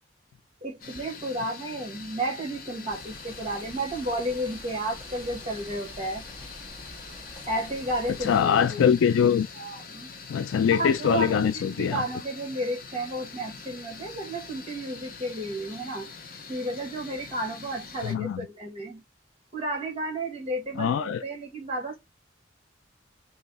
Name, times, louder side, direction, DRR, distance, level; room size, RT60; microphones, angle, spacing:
voice 1, 0.6-6.2 7.5-8.8 9.5-10.1 10.7-16.1 16.5-19.0 19.5-22.0, right 1 dB, 30° right, 1.5 m, -32 dB
sound 1, 0.8-18.2, left 5 dB, 50° left, 0.7 m, -44 dB
sound 2, 2.9-8.4, equal, 25° left, 1.5 m, -47 dB
voice 2, 8.2-9.5 10.3-12.0 18.0-18.4 20.8-21.2, left 7 dB, 90° left, 0.3 m, -23 dB
3.1 x 2.8 x 4.0 m
head